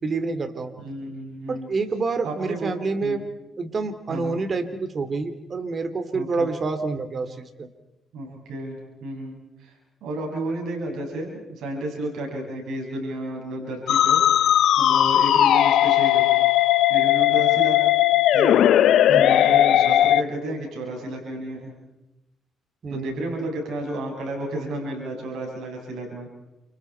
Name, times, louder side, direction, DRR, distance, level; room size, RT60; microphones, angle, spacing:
voice 1, 0.0-0.7 1.5-3.2 3.6-7.7 17.2-17.3 19.1-19.4 22.8-23.2, right 3 dB, 40° right, 9 dB, 2.6 m, -28 dB
voice 2, 0.8-1.7 2.2-2.7 3.0-3.2 4.1-4.4 6.1-6.5 8.1-9.7 10.0-14.5 14.8-16.3 16.9-17.8 18.3-18.6 19.1-21.7 22.9-26.3, right 1 dB, 80° right, 1 dB, 6.7 m, -32 dB
Musical instrument, 13.9-20.2, left 12 dB, 75° left, 0.9 m, -18 dB
30.0 x 27.5 x 4.5 m, 0.94 s
cardioid pair, 90°, 0 cm